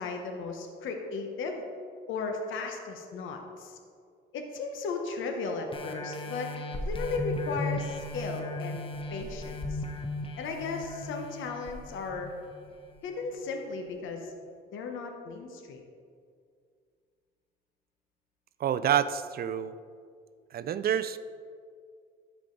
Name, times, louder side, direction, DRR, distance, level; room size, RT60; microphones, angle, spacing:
voice 1, 0.0-1.6 2.1-3.8 4.3-6.6 6.8-8.8 9.1-9.8 10.4-12.3 13.0-14.3 14.7-15.8, left 4 dB, 80° left, 3 dB, 1.0 m, -35 dB
sound 1, 5.7-12.9 13.4-13.5, left 2 dB, 25° left, 1.0 m, -37 dB
voice 2, 18.6-19.7 20.5-21.2, right 9 dB, 50° right, 13 dB, 0.4 m, -28 dB
12.5 x 4.8 x 3.9 m, 2.2 s
cardioid pair, 90°, 20 cm